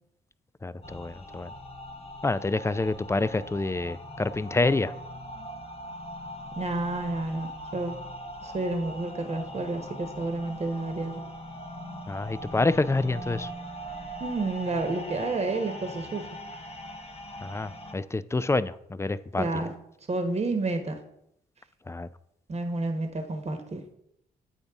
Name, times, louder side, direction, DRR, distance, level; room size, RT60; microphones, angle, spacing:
voice 1, 0.6-1.5 2.2-4.9 12.1-13.5 17.4-19.4 21.9-22.1, left 3 dB, 15° left, 0.4 m, -27 dB
sound 1, 0.8-17.9, equal, 35° left, 1.1 m, -41 dB
voice 2, 6.6-8.0 8.4-11.2 14.2-16.3 19.4-19.7 20.1-21.0 22.5-23.8, right 2 dB, 35° right, 1.1 m, -30 dB
8.4 x 4.0 x 3.6 m
supercardioid pair, 60°, 18 cm